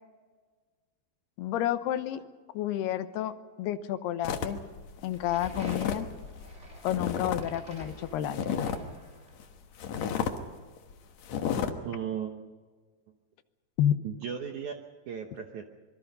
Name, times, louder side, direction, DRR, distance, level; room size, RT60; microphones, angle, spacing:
voice 1, 1.4-2.2 2.5-4.6 5.0-6.1 6.8-8.4 13.8-14.0, left 11 dB, 75° left, 10 dB, 2.9 m, -30 dB
sound 1, 4.2-7.5 7.7-8.9 9.4-9.5 9.8-10.4 10.8-10.9 11.2-11.7, left 7 dB, 60° left, 2.0 m, -32 dB
sound 2, 5.1-9.5, equal, 20° right, 3.2 m, -49 dB
voice 2, 11.8-12.4 14.0-14.7 15.1-15.6, right 8 dB, 70° right, 4 dB, 1.9 m, -35 dB
26.0 x 23.0 x 5.5 m, 1.5 s
omnidirectional pair, 4.8 m